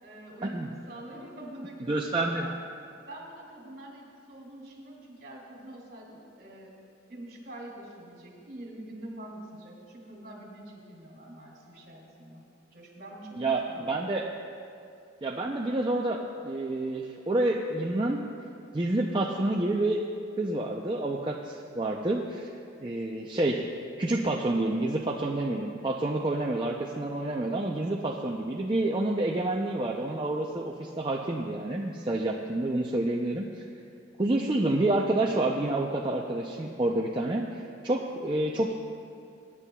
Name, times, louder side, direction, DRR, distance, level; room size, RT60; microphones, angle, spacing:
voice 1, 0.0-2.5 3.1-6.7 7.1-12.4 12.7-13.9, right 1 dB, 50° right, -2 dB, 2.7 m, -45 dB
voice 2, 1.9-2.5 13.4-14.2 15.2-18.2 18.7-20.1 20.4-22.5 22.8-23.6 24.0-33.6 34.2-38.7, right 2 dB, 25° right, -1 dB, 0.5 m, -28 dB
21.5 x 9.8 x 2.3 m, 2.4 s
head